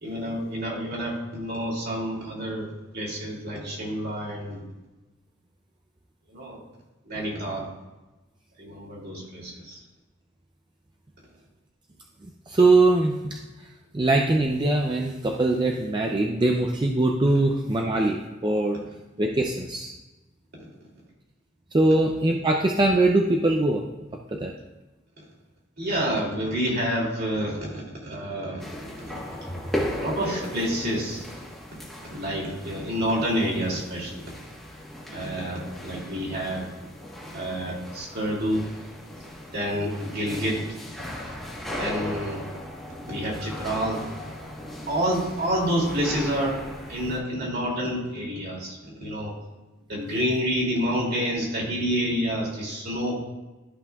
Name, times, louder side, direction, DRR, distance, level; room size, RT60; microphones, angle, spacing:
voice 1, 0.0-4.6 6.3-6.6 7.1-7.7 8.6-9.8 25.8-28.6 29.1-29.2 30.0-31.2 32.1-34.2 35.1-36.6 37.3-38.6 39.5-40.6 41.8-42.4 43.0-44.0 44.9-46.6 46.9-49.3 49.9-53.1, equal, 50° right, -4 dB, 2.7 m, -28 dB
voice 2, 12.5-13.4 13.9-18.8 19.2-19.9 21.7-23.8 24.3-24.5, right 2 dB, 25° right, 1 dB, 0.5 m, -22 dB
sound 1, 28.6-47.2, left 1 dB, ahead, 1.4 m, -37 dB
13.0 x 5.5 x 2.4 m, 1.1 s
head